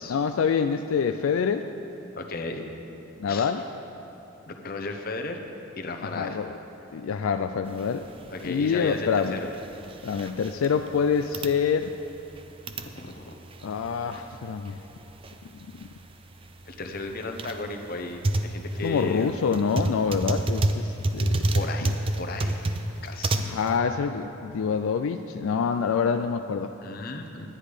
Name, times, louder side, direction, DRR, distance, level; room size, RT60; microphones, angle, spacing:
voice 1, 0.1-1.7 3.2-3.6 6.1-6.5 6.9-8.1 8.4-9.4 10.0-11.9 13.6-14.8 18.8-21.4 21.8-21.9 23.4-26.7, left 6 dB, 80° left, 8 dB, 0.3 m, -26 dB
voice 2, 2.2-2.7 3.3-3.5 4.5-5.4 5.8-6.4 8.3-9.5 12.9-13.3 16.7-19.4 21.5-22.7 23.0-23.5 26.8-27.5, left 2 dB, 45° left, 4 dB, 0.8 m, -35 dB
sound 1, 7.7-23.8, right 1 dB, 25° right, 0.4 m, -31 dB
11.0 x 10.0 x 5.0 m, 2.9 s
head